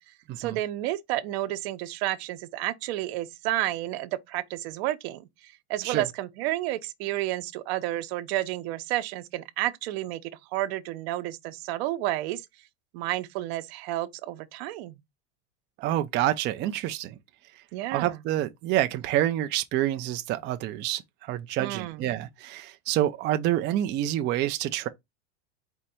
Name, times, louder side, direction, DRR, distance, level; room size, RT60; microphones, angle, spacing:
voice 1, 0.1-12.4 12.9-15.0 17.7-18.2 21.6-22.0, right 15 dB, 65° right, 0.8 m, -31 dB
voice 2, 15.8-17.2 17.9-24.9, right 13 dB, 35° right, 0.4 m, -27 dB
4.4 x 2.5 x 4.3 m
supercardioid pair, 115°, 34 cm